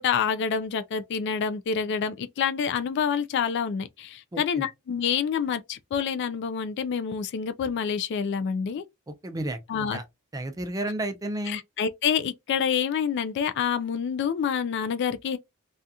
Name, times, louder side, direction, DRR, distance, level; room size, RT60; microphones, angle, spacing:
voice 1, 0.0-8.8 9.7-10.0 11.5-15.4, left 7 dB, 55° left, 0.3 m, -27 dB
voice 2, 4.3-4.6 9.1-9.6 9.9-10.0 10.3-11.6, right 1 dB, 15° right, 0.4 m, -32 dB
2.7 x 2.4 x 2.2 m
head